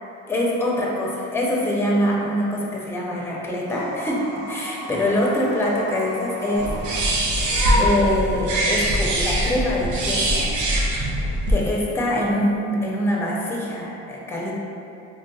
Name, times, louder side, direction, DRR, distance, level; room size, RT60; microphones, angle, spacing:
voice 1, 0.3-6.7 7.8-10.5 11.5-14.5, left 1 dB, 10° left, -3 dB, 0.5 m, -24 dB
sound 1, 3.6-7.1, right 2 dB, 35° right, 0.6 m, -36 dB
sound 2, 6.6-11.5, right 1 dB, 80° right, 0.6 m, -22 dB
3.3 x 2.7 x 2.3 m, 2.6 s
cardioid pair, 90°, 30 cm